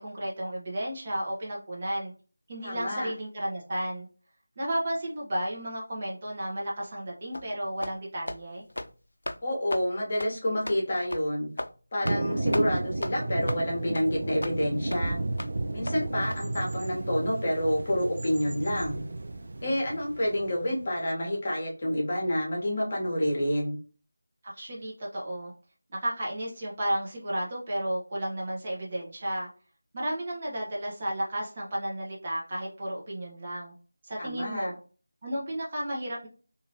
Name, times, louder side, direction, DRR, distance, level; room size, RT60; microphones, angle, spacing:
voice 1, 0.0-2.1 2.5-4.1 4.6-8.6 24.4-25.5 25.9-29.5 29.9-33.7 34.0-34.8 35.2-36.3, right 1 dB, 30° right, -4 dB, 0.9 m, -33 dB
voice 2, 2.6-3.1 9.4-11.5 11.9-15.2 15.7-19.0 19.6-23.8 34.2-34.7, left 1 dB, 35° left, -2 dB, 1.0 m, -28 dB
sound 1, 7.3-7.5 7.8-8.0 8.3-8.4 8.7-8.9 9.3-9.4 9.7-9.9 10.2-10.3 10.7-10.8 11.1-11.3 11.6-11.7 12.1-12.2 12.5-12.7 13.0-13.1 13.5-13.6 14.0-14.1 14.4-14.6 14.9-15.0 15.4-15.5 15.9-16.0 16.3-16.4, left 1 dB, 75° left, 0.3 m, -35 dB
Thunder, 12.0-21.0, right 2 dB, 45° right, 0.4 m, -33 dB
2.9 x 2.6 x 2.7 m, 0.38 s
figure-of-eight pair, 170°, 0 cm